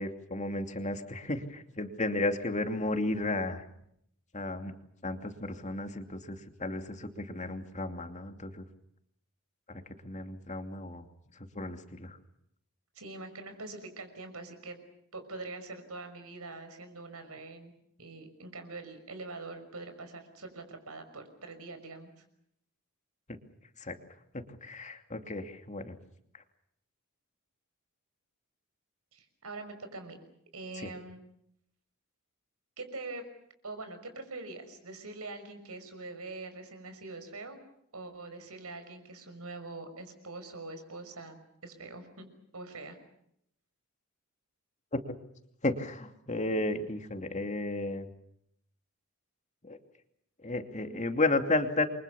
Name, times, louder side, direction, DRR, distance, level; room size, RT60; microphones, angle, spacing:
voice 1, 0.0-3.6 4.3-4.7 5.0-8.7 9.7-11.0 11.3-12.2 23.3-23.4 23.8-24.0 24.3-26.0 30.7-30.9 44.9-45.0 45.6-48.1 49.6-49.8 50.4-51.9, left 2 dB, 35° left, 6 dB, 2.6 m, -33 dB
voice 2, 12.9-14.8 15.1-17.7 18.0-22.1 29.1-30.2 30.5-31.2 32.8-33.2 33.6-37.6 37.9-42.3 42.5-43.0, right 3 dB, 75° right, 8 dB, 6.0 m, -44 dB
29.0 x 24.5 x 7.1 m, 0.74 s
head